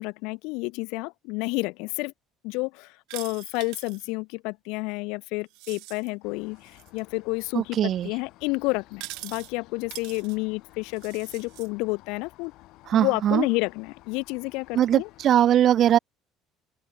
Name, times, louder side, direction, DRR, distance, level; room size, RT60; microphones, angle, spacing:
voice 1, 0.0-2.1 2.4-7.8 8.0-12.5 12.9-15.1, left 27 dB, 80° left, 1.3 m, -30 dB
sound 1, 3.1-4.1 5.5-6.1 6.6-7.0 8.9-9.5 9.9-10.4 10.9-11.7, right 24 dB, 80° right, 3.1 m, -42 dB
sound 2, 6.2-15.3, left 18 dB, 65° left, 6.5 m, -54 dB
voice 2, 7.5-8.1 12.9-13.5 14.7-16.0, right 11 dB, 45° right, 0.4 m, -21 dB
open air
cardioid pair, 145°, 0 cm